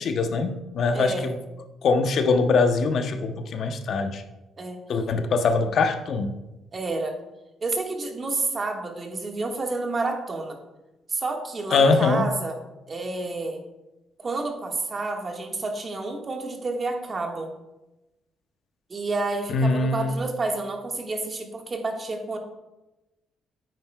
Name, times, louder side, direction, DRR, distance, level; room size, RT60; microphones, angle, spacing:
voice 1, 0.0-1.4 1.8-4.2 4.9-6.3 11.7-12.3 19.5-20.1, left 4 dB, 60° left, 7 dB, 0.7 m, -22 dB
voice 2, 0.9-1.3 4.6-4.8 6.7-7.2 7.6-10.6 11.1-12.6 12.9-13.6 14.2-17.5 18.9-22.4, right 3 dB, 35° right, 2 dB, 1.5 m, -29 dB
9.0 x 9.0 x 2.2 m, 1.0 s
cardioid pair, 90°, 0 cm